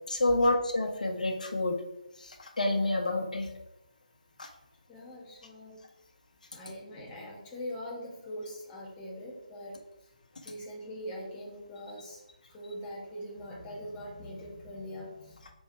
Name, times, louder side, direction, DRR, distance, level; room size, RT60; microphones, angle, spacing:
voice 1, 0.1-1.7 2.2-3.5 4.4-4.5, left 2 dB, 65° left, 3 dB, 1.3 m, -28 dB
voice 2, 4.9-5.8 6.5-9.8 10.4-12.2 12.5-15.4, equal, 15° left, -4 dB, 1.7 m, -42 dB
5.5 x 4.5 x 4.8 m, 0.88 s
figure-of-eight pair, 150°, 4 cm